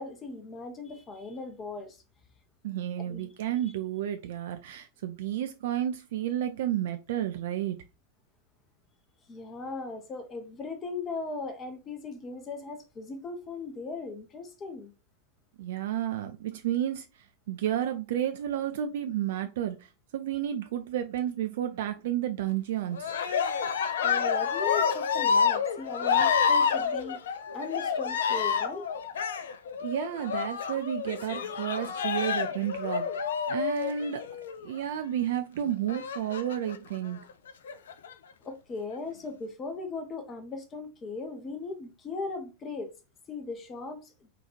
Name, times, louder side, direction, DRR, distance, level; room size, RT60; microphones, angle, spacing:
voice 1, 0.0-2.0 3.0-3.3 9.3-14.9 24.0-27.2 27.5-28.9 38.4-42.9 43.3-44.1, left 3 dB, 25° left, 0.6 m, -38 dB
voice 2, 2.6-7.8 15.6-23.1 29.8-34.2 34.6-37.2, right 11 dB, 55° right, 0.3 m, -31 dB
Cheering, 22.9-34.6 35.9-36.8 37.5-38.1, left 6 dB, 65° left, 0.4 m, -28 dB
3.8 x 2.3 x 2.9 m
figure-of-eight pair, 90°, 0 cm